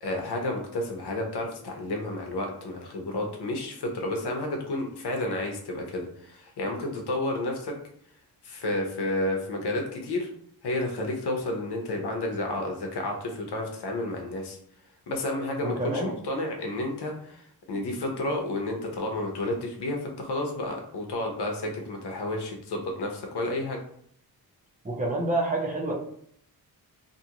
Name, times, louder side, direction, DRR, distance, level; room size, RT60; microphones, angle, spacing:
voice 1, 0.0-7.7 8.4-10.3 10.6-14.6 15.1-17.4 17.7-23.8, left 1 dB, 80° left, 2 dB, 0.8 m, -31 dB
voice 2, 15.6-16.1 24.8-25.9, right 2 dB, 20° right, -3 dB, 0.6 m, -28 dB
2.7 x 2.5 x 2.9 m, 0.67 s
wide cardioid pair, 150°, 40 cm